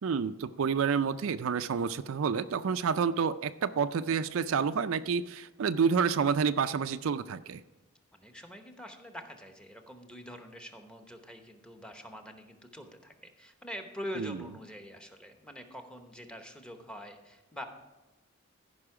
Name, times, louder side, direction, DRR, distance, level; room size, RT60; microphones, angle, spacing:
voice 1, 0.0-7.6 14.2-14.4, right 6 dB, 75° right, 11 dB, 0.4 m, -29 dB
voice 2, 8.1-17.6, equal, 5° left, 5 dB, 0.9 m, -45 dB
15.0 x 5.4 x 4.8 m, 1.1 s
head